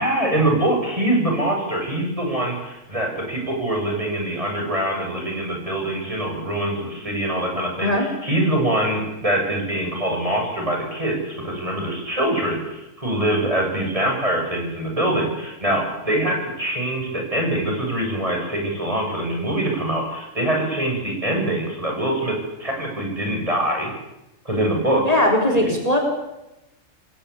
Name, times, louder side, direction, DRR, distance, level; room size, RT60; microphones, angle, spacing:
voice 1, 0.0-23.9 24.4-25.0 25.6-25.8, right 1 dB, 20° right, 0 dB, 8.0 m, -24 dB
voice 2, 25.0-26.0, left 1 dB, 25° left, 3 dB, 4.5 m, -19 dB
29.0 x 21.5 x 8.7 m, 0.92 s
omnidirectional pair, 1.5 m